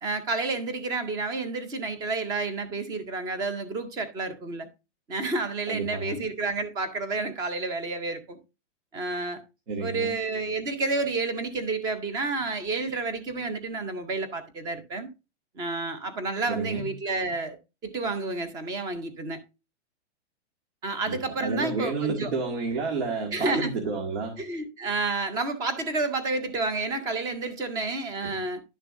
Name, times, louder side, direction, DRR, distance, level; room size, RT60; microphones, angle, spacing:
voice 1, 0.0-4.7 5.1-8.4 8.9-9.4 9.8-15.1 15.6-17.6 17.8-19.4 20.8-22.3 23.3-23.7 24.4-28.6, right 3 dB, 10° right, 0.5 m, -30 dB
voice 2, 5.7-6.2 9.7-10.2 16.5-16.9 21.0-24.4 28.2-28.3, right 4 dB, 70° right, 2.1 m, -31 dB
11.0 x 6.6 x 2.5 m
hypercardioid pair, 165°, 35 cm